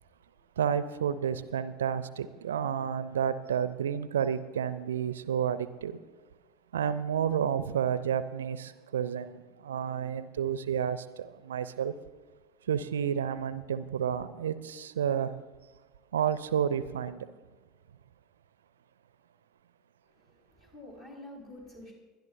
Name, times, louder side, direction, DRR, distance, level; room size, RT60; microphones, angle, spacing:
voice 1, 0.6-6.0 6.7-11.9 12.6-15.4 16.1-17.3, right 8 dB, 70° right, 0.6 m, -30 dB
voice 2, 20.0-21.9, left 1 dB, 40° left, 4.6 m, -48 dB
22.0 x 12.0 x 2.7 m
figure-of-eight pair, 75°, 0 cm